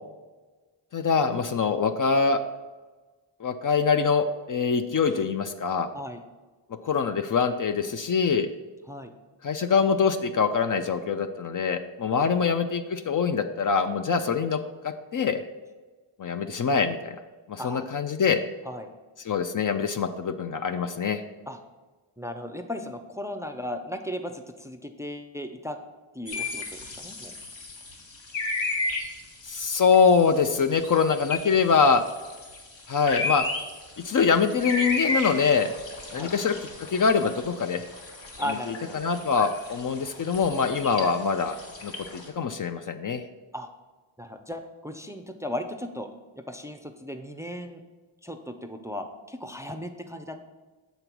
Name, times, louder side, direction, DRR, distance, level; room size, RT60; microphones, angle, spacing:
voice 1, 0.9-2.4 3.4-5.9 6.8-8.5 9.4-15.4 16.2-17.2 17.5-18.4 19.3-21.2 29.5-32.0 32.9-33.4 34.0-35.7 36.1-36.5 36.9-37.8 38.7-41.6 41.8-43.2, left 5 dB, 40° left, 9 dB, 0.5 m, -24 dB
voice 2, 12.2-12.6 17.6-17.9 18.7-18.9 21.5-21.6 22.2-25.8 26.1-27.3 36.1-36.3 38.4-39.0 43.5-43.7 44.2-46.1 46.4-47.8 48.2-50.4, left 1 dB, 5° right, 6 dB, 0.5 m, -36 dB
sound 1, 26.3-42.3, left 3 dB, 65° left, 1.6 m, -34 dB
6.7 x 4.0 x 5.9 m, 1.3 s
cardioid pair, 65°, 49 cm